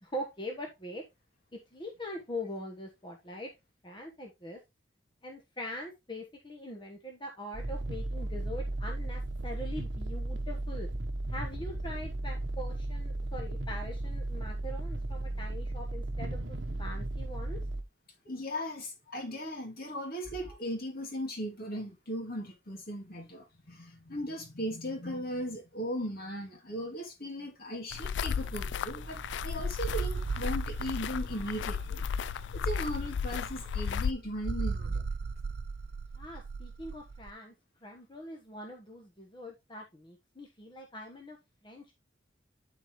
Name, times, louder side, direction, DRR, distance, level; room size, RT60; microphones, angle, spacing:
voice 1, 0.0-1.0 1.7-3.5 3.8-4.6 5.2-10.9 11.3-17.6 19.1-19.2 20.3-20.6 36.1-37.5 37.8-41.4 41.6-41.9, left 1 dB, 25° left, 1.2 m, -42 dB
sound 1, 7.5-17.8, right 2 dB, 85° right, 1.0 m, -35 dB
voice 2, 18.2-35.0, equal, 55° left, 2.6 m, -38 dB
sound 2, 27.9-34.1, left 7 dB, 75° left, 0.4 m, -34 dB
sound 3, 28.1-37.3, right 4 dB, 60° right, 0.5 m, -38 dB
12.0 x 4.4 x 3.0 m
head